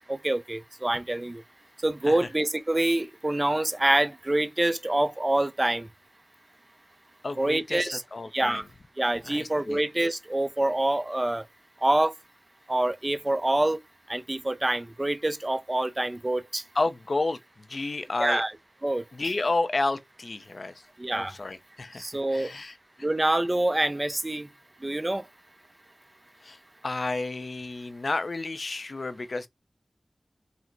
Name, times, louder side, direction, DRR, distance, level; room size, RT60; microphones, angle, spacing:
voice 1, 0.1-1.4 1.8-5.9 7.4-8.0 8.3-8.6 9.0-11.4 11.8-12.1 12.7-13.8 14.1-16.6 18.2-18.5 18.8-19.0 21.0-21.3 22.0-22.5 23.0-24.5 24.8-25.2, right 1 dB, 30° right, 0.5 m, -26 dB
voice 2, 7.2-8.6 9.3-9.8 16.8-17.4 17.7-18.4 19.1-20.7 21.1-22.0 22.3-22.7 26.4-26.6 26.8-29.5, left 3 dB, 65° left, 0.5 m, -31 dB
3.8 x 2.1 x 4.4 m
wide cardioid pair, 65°, 0 cm